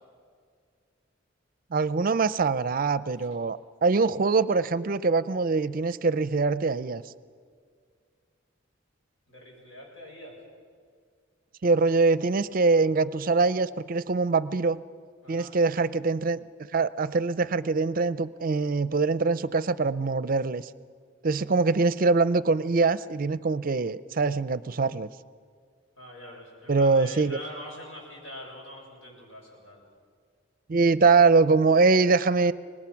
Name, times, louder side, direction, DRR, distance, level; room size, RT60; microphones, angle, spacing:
voice 1, 1.7-7.0 11.6-14.8 15.3-16.4 16.7-20.6 21.2-25.1 26.7-27.4 30.7-32.5, right 4 dB, 45° right, 16 dB, 0.5 m, -23 dB
voice 2, 9.3-10.3 15.2-15.5 26.0-29.8, equal, 90° left, -2 dB, 6.8 m, -44 dB
23.5 x 20.0 x 5.9 m, 2.1 s
head